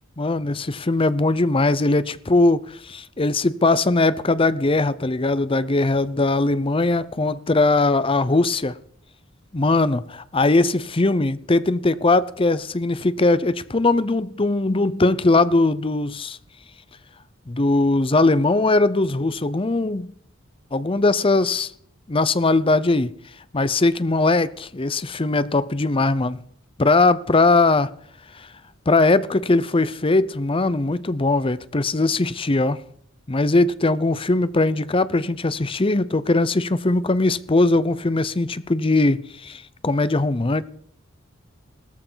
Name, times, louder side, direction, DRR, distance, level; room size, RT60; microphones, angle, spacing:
voice 1, 0.2-8.8 9.5-16.4 17.5-20.1 20.7-21.7 22.1-23.1 23.5-26.4 26.8-27.9 28.9-32.8 33.3-40.6, left 2 dB, 25° left, 0.7 m, -20 dB
17.5 x 14.0 x 5.6 m
head